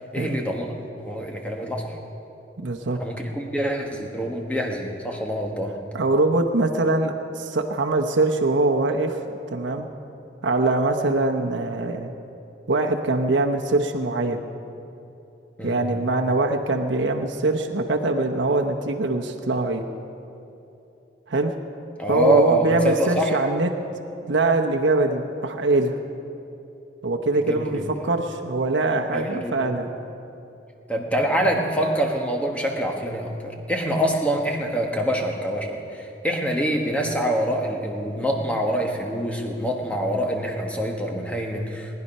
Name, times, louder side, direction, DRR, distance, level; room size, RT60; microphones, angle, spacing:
voice 1, 0.1-2.0 3.0-5.8 15.6-15.8 22.0-23.4 27.3-27.9 29.1-29.7 30.9-41.9, right 1 dB, 5° left, 1 dB, 1.3 m, -25 dB
voice 2, 2.6-3.0 5.9-9.2 9.5-9.9 10.4-12.1 12.7-14.4 15.6-19.8 21.3-21.5 22.1-23.7 24.3-26.0 27.0-29.9, right 2 dB, 80° right, 3 dB, 0.9 m, -23 dB
19.0 x 10.5 x 5.5 m, 2.8 s
head